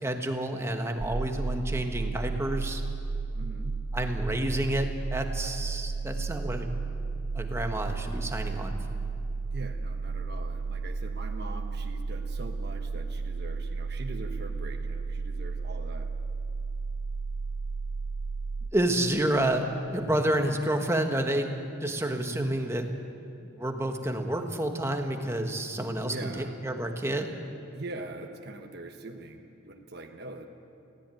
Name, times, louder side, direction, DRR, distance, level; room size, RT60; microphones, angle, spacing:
voice 1, 0.0-2.8 3.9-6.7 7.3-8.8 18.7-19.7 19.9-21.5 21.8-22.9 23.4-27.4, right 1 dB, 15° right, 4 dB, 1.4 m, -29 dB
sound 1, 1.0-18.7, right 4 dB, 80° right, 0.7 m, -33 dB
voice 2, 3.3-3.7 9.5-16.1 22.2-22.5 26.0-26.6 27.7-30.5, right 2 dB, 55° right, 3 dB, 1.3 m, -42 dB
18.5 x 16.5 x 9.1 m, 2.6 s
head